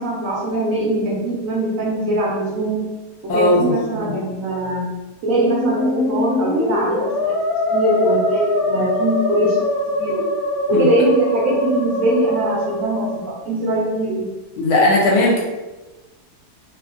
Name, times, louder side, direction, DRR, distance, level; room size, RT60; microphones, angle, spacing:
voice 1, 0.0-2.8 3.2-4.9 5.2-7.3 7.6-10.3 10.7-14.4, right 1 dB, 70° right, -3 dB, 0.8 m, -21 dB
voice 2, 3.3-4.1 10.7-10.9 14.6-15.4, left 1 dB, 70° left, -2 dB, 1.1 m, -17 dB
Musical instrument, 5.3-13.3, left 2 dB, 50° left, 1.1 m, -23 dB
2.8 x 2.4 x 2.5 m, 1.2 s
omnidirectional pair, 1.8 m